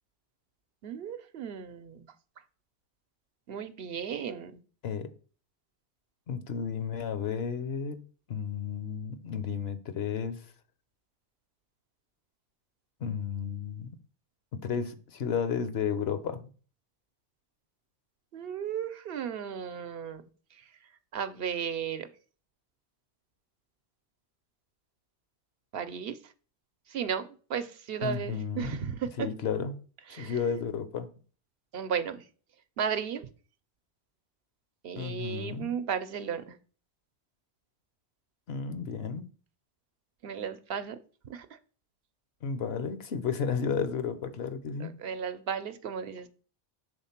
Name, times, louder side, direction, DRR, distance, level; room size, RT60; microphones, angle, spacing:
voice 1, 0.8-2.1 3.5-4.6 18.3-20.2 21.1-22.1 25.7-26.2 26.9-29.3 30.1-30.4 31.7-32.2 32.8-33.3 34.8-36.6 40.2-41.0 41.2-41.6 44.8-46.3, right 7 dB, 65° right, 0.8 m, -34 dB
voice 2, 6.3-8.0 8.3-10.5 13.0-14.0 14.5-16.5 28.0-28.8 29.2-29.7 30.2-31.1 35.0-35.7 38.5-39.3 42.4-44.9, left 6 dB, 70° left, 1.0 m, -33 dB
7.1 x 3.6 x 5.7 m
omnidirectional pair, 1.1 m